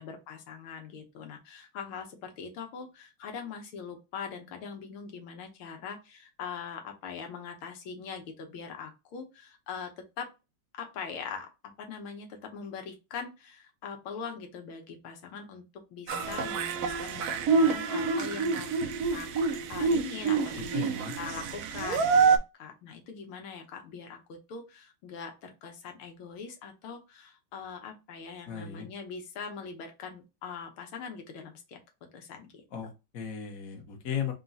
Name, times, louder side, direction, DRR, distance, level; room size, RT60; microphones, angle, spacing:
voice 1, 0.0-9.9 10.2-10.3 10.7-11.5 11.8-18.7 19.1-20.9 21.2-31.8 32.1-32.6, left 6 dB, 80° left, 4 dB, 1.7 m, -42 dB
sound 1, 16.1-22.4, right 5 dB, 85° right, 0.8 m, -27 dB
voice 2, 20.7-21.2 28.5-28.9 32.7-34.3, left 8 dB, 50° left, 2 dB, 1.3 m, -36 dB
4.0 x 2.3 x 3.9 m, 0.26 s
omnidirectional pair, 2.3 m